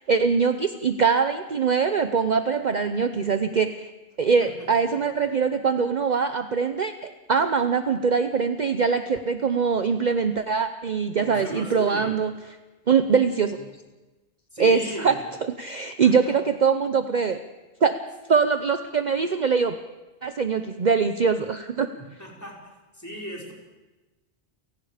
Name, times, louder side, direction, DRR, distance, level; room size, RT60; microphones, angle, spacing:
voice 1, 0.0-3.8 4.2-12.3 12.9-13.6 14.6-15.1 15.5-17.4 17.8-18.0 18.3-19.8 20.2-21.9, right 5 dB, 45° right, 9 dB, 0.9 m, -23 dB
voice 2, 11.2-12.1 14.5-15.2 16.0-16.3 21.9-22.5 22.9-23.5, equal, 15° left, -3 dB, 5.4 m, -37 dB
29.5 x 17.5 x 5.0 m, 1.2 s
omnidirectional pair, 1.1 m